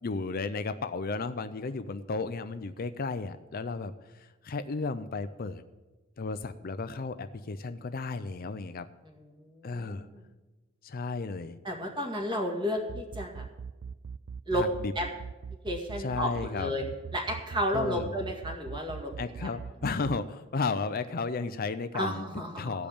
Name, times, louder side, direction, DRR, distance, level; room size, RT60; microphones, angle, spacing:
voice 1, 0.0-5.6 6.2-8.9 9.6-10.1 10.8-11.6 14.5-14.9 16.0-16.7 17.7-18.1 19.2-22.3 22.6-22.9, left 4 dB, 45° left, 11 dB, 0.5 m, -34 dB
voice 2, 9.3-10.2 11.6-13.4 14.5-14.6 15.0-15.1 15.6-16.8 17.1-19.1 21.9-22.9, equal, 20° right, 1 dB, 2.0 m, -32 dB
sound 1, 12.8-20.2, right 6 dB, 55° right, 0.3 m, -40 dB
15.5 x 5.2 x 8.6 m, 1.2 s
head